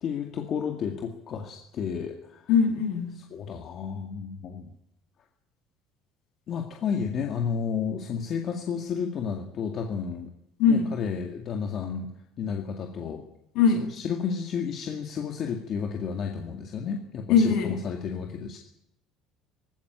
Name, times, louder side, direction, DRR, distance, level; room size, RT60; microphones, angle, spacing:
voice 1, 0.0-2.5 3.1-4.7 6.5-10.3 10.7-12.1 12.4-13.2 13.7-18.6, left 6 dB, 35° left, 3 dB, 2.1 m, -32 dB
voice 2, 2.5-3.1 10.6-10.9 13.5-13.8 17.3-17.8, left 6 dB, 60° left, 3 dB, 7.8 m, -21 dB
19.5 x 16.0 x 9.5 m, 0.79 s
cardioid pair, 165°, 0 cm